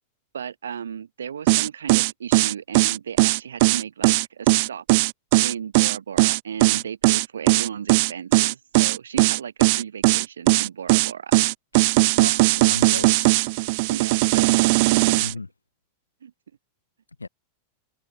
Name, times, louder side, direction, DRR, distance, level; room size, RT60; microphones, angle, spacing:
voice 1, 0.3-4.8 5.4-11.3 13.9-15.2 16.2-16.3, right 8 dB, 70° right, 3.2 m, -35 dB
sound 1, 1.5-15.3, right 26 dB, 50° right, 2.2 m, -18 dB
voice 2, 12.2-13.5 15.2-15.5 17.2-17.3, left 3 dB, 80° left, 2.2 m, -35 dB
figure-of-eight pair, 90°, 0 cm